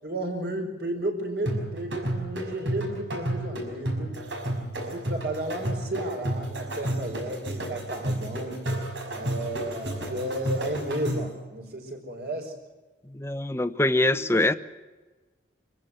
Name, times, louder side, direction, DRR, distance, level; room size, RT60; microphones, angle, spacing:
voice 1, 0.0-4.1 4.7-8.6 9.1-12.5, right 1 dB, 60° right, 3 dB, 5.0 m, -33 dB
sound 1, 1.5-11.4, right 1 dB, 90° right, 5.9 m, -32 dB
voice 2, 13.1-14.5, left 2 dB, 15° left, 12 dB, 0.7 m, -23 dB
26.0 x 15.5 x 7.9 m, 1.3 s
head